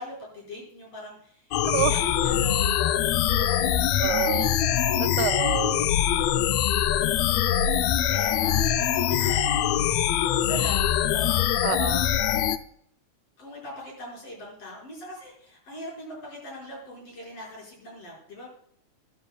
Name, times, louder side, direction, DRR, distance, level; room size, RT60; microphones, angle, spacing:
voice 1, 0.0-4.0 4.3-4.6 5.1-5.2 7.5-7.7 8.1-11.7 13.4-18.5, equal, 50° left, -3 dB, 6.2 m, -42 dB
sound 1, 1.5-12.6, left 10 dB, 80° left, 1.5 m, -23 dB
voice 2, 1.7-2.0 4.0-4.6 5.0-5.9 9.1-9.2 11.6-12.2, right 15 dB, 80° right, 11 dB, 2.0 m, -29 dB
13.5 x 12.0 x 2.2 m, 0.64 s
omnidirectional pair, 3.5 m